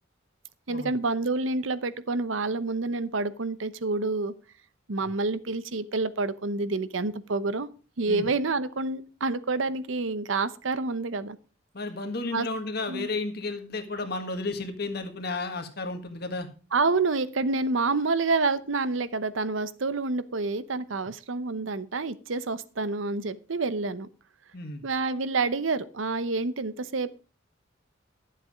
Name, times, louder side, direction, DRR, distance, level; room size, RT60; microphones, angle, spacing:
voice 1, 0.7-4.3 4.9-7.7 8.0-11.4 12.3-12.5 12.9-13.1 16.7-24.1 24.8-27.2, right 3 dB, 75° right, 14 dB, 0.8 m, -28 dB
voice 2, 11.7-16.5 24.5-24.8, left 3 dB, 50° left, 7 dB, 1.7 m, -33 dB
11.5 x 7.6 x 5.0 m, 0.35 s
head